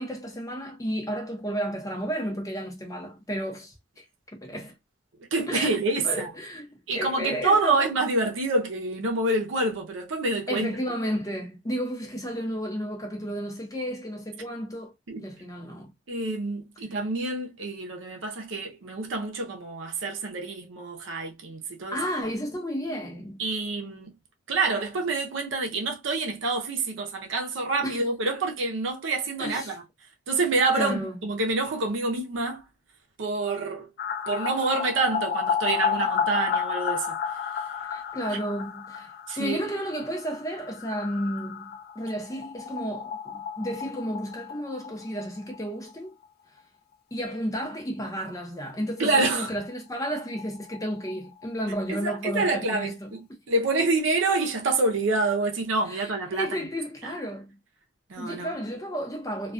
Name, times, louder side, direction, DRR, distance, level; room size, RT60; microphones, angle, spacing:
voice 1, 0.0-4.0 4.3-4.7 5.5-5.7 6.0-7.8 10.5-14.9 15.2-15.9 21.9-23.4 27.8-28.1 29.4-29.8 30.7-31.2 37.9-39.1 39.4-46.1 47.1-53.1 55.9-57.6 58.2-59.5, equal, 20° left, 0.6 m, -32 dB
voice 2, 5.3-6.3 6.9-10.7 15.1-15.2 16.1-22.0 23.4-24.1 24.5-29.8 30.3-32.6 33.2-33.9 34.3-37.2 39.3-39.6 49.0-49.5 51.9-56.5 57.0-57.1 58.1-58.5, right 3 dB, 75° right, 0.6 m, -27 dB
sound 1, 34.0-45.6 45.9-46.0 46.2-46.3 49.3-49.4 49.7-49.8 50.0-51.8 52.1-52.2, left 7 dB, 55° left, 0.3 m, -32 dB
2.3 x 2.2 x 2.4 m
head